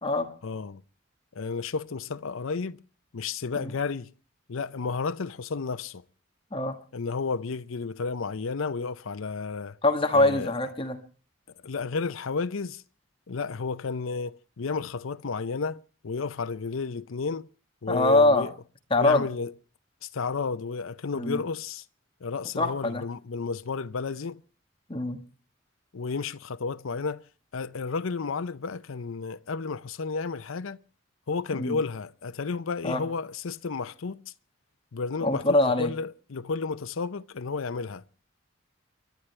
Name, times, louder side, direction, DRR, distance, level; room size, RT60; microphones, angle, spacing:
voice 1, 0.4-0.8 1.3-2.8 3.1-4.1 4.5-6.0 6.9-9.8 10.1-10.5 11.6-12.8 13.3-17.5 17.8-18.5 19.0-19.5 20.0-21.8 22.2-24.4 25.9-27.2 27.5-30.8 31.3-34.2 34.9-38.0, left 4 dB, 85° left, 0.6 m, -32 dB
voice 2, 9.8-11.0 17.9-18.5 18.9-19.2 21.2-21.4 22.6-23.0 24.9-25.2 31.5-31.8 32.8-33.0 35.2-35.9, left 2 dB, 25° left, 1.4 m, -23 dB
29.5 x 11.5 x 3.2 m
head